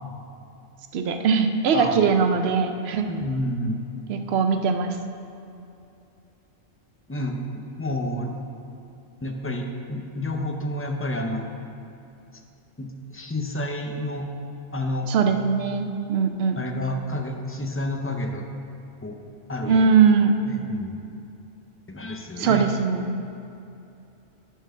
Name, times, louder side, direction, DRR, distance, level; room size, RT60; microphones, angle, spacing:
voice 1, 0.9-3.1 4.1-4.9 15.1-16.6 19.7-20.4 22.4-23.1, right 6 dB, 65° right, 6 dB, 0.9 m, -21 dB
voice 2, 1.7-2.1 3.1-3.8 7.1-8.3 9.2-11.5 12.8-14.3 14.7-15.1 16.6-18.4 19.0-19.2 19.5-19.9 20.5-21.0 21.9-22.7, left 1 dB, 15° left, 2 dB, 0.5 m, -30 dB
11.5 x 4.5 x 6.2 m, 2.7 s
omnidirectional pair, 1.2 m